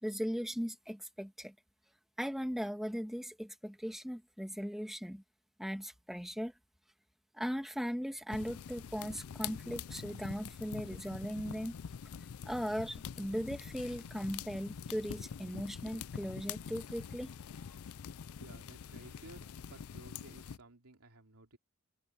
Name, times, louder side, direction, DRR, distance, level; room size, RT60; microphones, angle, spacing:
voice 1, 0.0-1.5 2.2-5.2 5.6-6.5 7.3-11.7 12.4-17.3, equal, ahead, 1.4 m, -38 dB
sound 1, 8.3-20.6, left 7 dB, 70° left, 0.4 m, -45 dB
voice 2, 18.4-21.6, right 2 dB, 85° right, 2.9 m, -56 dB
head